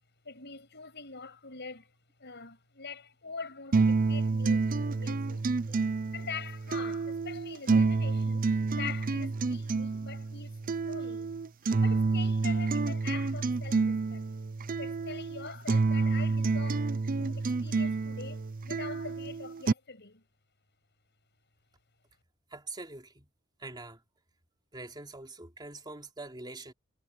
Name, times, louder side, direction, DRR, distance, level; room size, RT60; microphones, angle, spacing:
voice 1, 0.2-1.9 2.2-5.4 6.1-11.3 11.8-14.3 14.8-20.2, left 5 dB, 55° left, 7.6 m, -44 dB
sound 1, 3.7-19.7, right 3 dB, 40° right, 0.5 m, -29 dB
voice 2, 22.5-23.3 23.6-24.0 24.7-26.7, right 2 dB, 20° right, 3.3 m, -44 dB
head